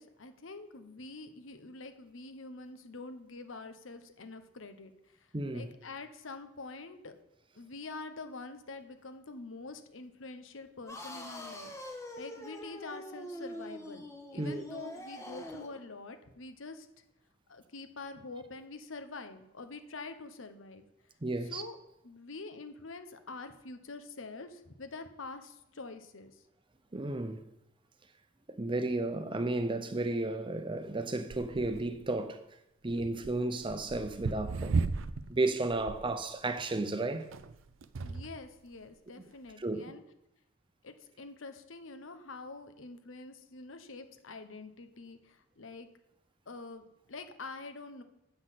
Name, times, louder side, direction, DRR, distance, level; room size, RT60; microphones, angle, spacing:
voice 1, 0.0-7.1 7.5-16.9 17.5-20.8 21.4-21.8 22.0-26.4 38.0-40.0 40.8-45.9 46.5-48.0, left 3 dB, 75° left, 1.0 m, -46 dB
voice 2, 5.3-5.7 14.4-14.6 21.2-21.6 26.9-27.4 28.5-32.4 32.8-34.8 35.3-37.3 39.6-39.9, right 2 dB, 25° right, 0.6 m, -33 dB
sound 1, 10.9-15.8, left 1 dB, 15° left, 1.2 m, -44 dB
sound 2, 31.3-32.1 32.9-35.3 35.7-36.1 37.2-38.5 39.3-39.4, right 4 dB, 75° right, 0.5 m, -35 dB
7.7 x 6.2 x 7.4 m
head